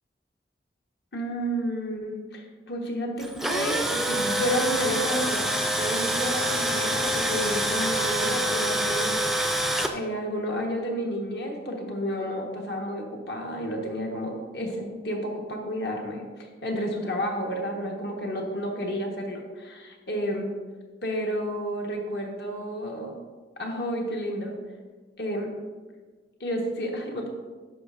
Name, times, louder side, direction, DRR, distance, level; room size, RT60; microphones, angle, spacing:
voice 1, 1.1-5.4 5.8-9.2 9.9-20.5 21.0-23.1 23.6-24.5 25.2-25.5 26.4-27.3, equal, 70° left, 0 dB, 1.2 m, -31 dB
Tools, 3.2-9.9, right 1 dB, ahead, 0.3 m, -26 dB
9.7 x 6.0 x 2.5 m, 1.4 s
head